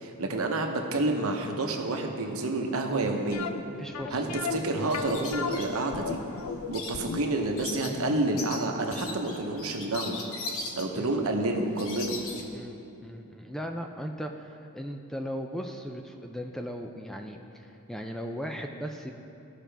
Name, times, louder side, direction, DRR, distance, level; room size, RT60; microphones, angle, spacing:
voice 1, 0.0-3.5 4.1-6.2 6.7-10.2 10.7-12.2, right 2 dB, 65° right, 3 dB, 0.9 m, -29 dB
sound 1, 3.3-10.2 10.5-10.6 11.1-11.3 11.5-11.6, left 6 dB, 90° left, 0.5 m, -37 dB
voice 2, 3.8-4.4 11.0-11.1 12.5-19.1, equal, ahead, 3 dB, 0.3 m, -38 dB
sound 2, 4.9-12.4, left 3 dB, 65° left, 1.0 m, -40 dB
15.5 x 6.0 x 3.4 m, 2.8 s
head